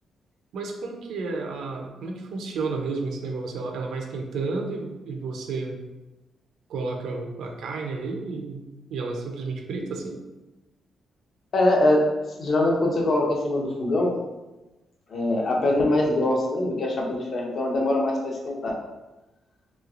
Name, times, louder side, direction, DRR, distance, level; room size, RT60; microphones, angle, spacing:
voice 1, 0.5-5.8 6.7-8.6 8.9-10.2, right 3 dB, 80° right, 2 dB, 0.5 m, -31 dB
voice 2, 11.5-12.0 12.4-14.1 15.1-18.7, left 1 dB, 45° left, -1 dB, 0.6 m, -23 dB
3.2 x 3.0 x 2.4 m, 1.1 s
wide cardioid pair, 165°, 0 cm